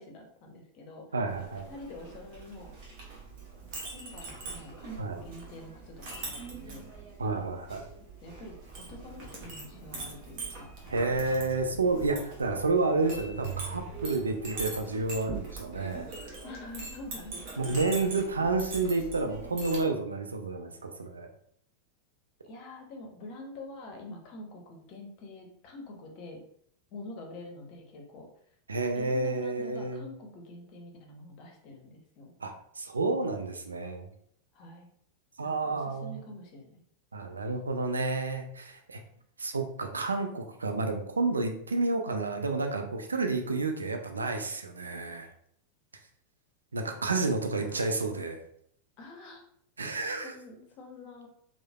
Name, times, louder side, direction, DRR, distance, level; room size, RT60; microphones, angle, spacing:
voice 1, 0.0-1.1 1.7-2.7 3.8-6.9 8.2-11.4 12.6-12.9 16.4-17.8 18.4-18.5 22.4-26.4 26.9-28.3 28.9-32.3 34.5-34.9 35.4-36.8 47.1-47.9 49.0-49.4 49.8-51.3, left 2 dB, 40° left, 1 dB, 0.6 m, -46 dB
voice 2, 1.1-1.7 5.0-5.2 7.2-7.8 10.9-16.1 17.6-21.3 28.7-30.0 32.4-34.1 35.4-36.2 37.1-39.0 39.4-45.3 46.7-48.4 49.8-50.3, right 3 dB, 75° right, 5 dB, 0.3 m, -30 dB
Chink clink, 1.3-19.8, right 3 dB, 45° right, 0.8 m, -43 dB
sound 1, 6.2-7.2 7.5-8.1 8.9-14.9, right 5 dB, 15° right, 0.9 m, -47 dB
3.0 x 2.0 x 2.3 m, 0.67 s
figure-of-eight pair, 90°, 0 cm